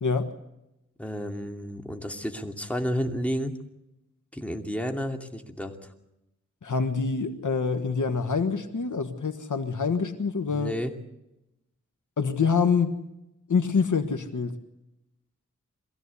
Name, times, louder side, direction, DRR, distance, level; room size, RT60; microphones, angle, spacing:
voice 1, 0.0-0.3 6.6-10.7 12.2-13.0 13.5-14.6, left 5 dB, 70° left, 8 dB, 1.5 m, -26 dB
voice 2, 1.0-3.6 4.3-5.9 10.5-10.9, equal, 5° left, 3 dB, 2.7 m, -31 dB
23.5 x 16.0 x 8.4 m, 0.91 s
wide cardioid pair, 55°, 31 cm